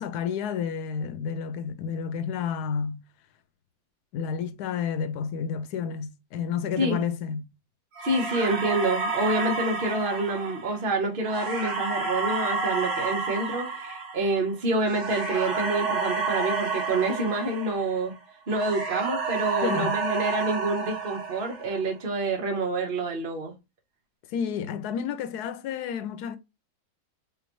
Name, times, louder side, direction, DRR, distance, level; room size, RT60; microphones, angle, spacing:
voice 1, 0.0-3.0 4.1-7.5 19.6-20.0 24.3-26.4, left 7 dB, 80° left, 1.1 m, -30 dB
voice 2, 8.0-18.1 18.5-23.5, right 2 dB, 40° right, 1.2 m, -27 dB
sound 1, 8.0-18.2 18.5-21.9, right 4 dB, 70° right, 2.3 m, -30 dB
5.1 x 2.4 x 3.0 m
omnidirectional pair, 1.7 m